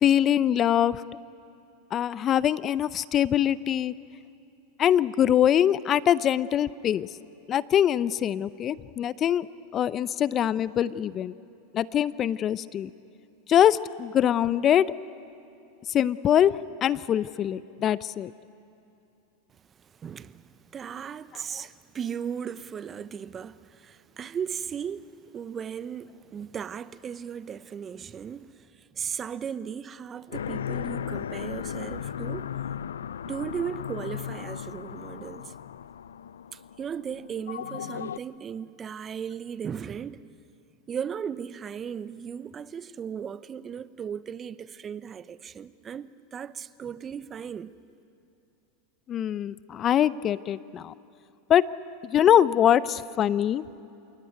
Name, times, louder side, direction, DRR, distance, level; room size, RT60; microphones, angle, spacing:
voice 1, 0.0-1.0 1.9-3.9 4.8-7.1 7.5-9.5 9.7-11.3 11.7-12.9 13.5-14.9 15.9-18.3 49.1-50.9 51.5-51.7 52.0-53.6, left 10 dB, 35° left, 0.6 m, -23 dB
voice 2, 19.5-32.5 33.2-35.5 36.5-40.4 40.9-47.7, right 7 dB, 30° right, 0.7 m, -36 dB
sound 1, 30.3-38.2, left 9 dB, 90° left, 0.5 m, -36 dB
28.5 x 18.0 x 9.5 m
hypercardioid pair, 105°, 0 cm